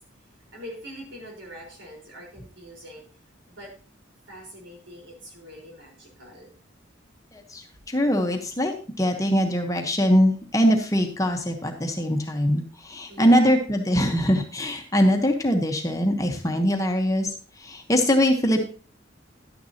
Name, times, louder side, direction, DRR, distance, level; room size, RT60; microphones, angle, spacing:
voice 1, 0.5-3.0 3.5-3.7 4.3-6.5 13.1-13.6, equal, 75° right, -1 dB, 4.4 m, -42 dB
voice 2, 7.3-17.3 17.6-18.6, equal, 15° left, 3 dB, 1.0 m, -22 dB
11.5 x 9.4 x 2.9 m, 0.40 s
head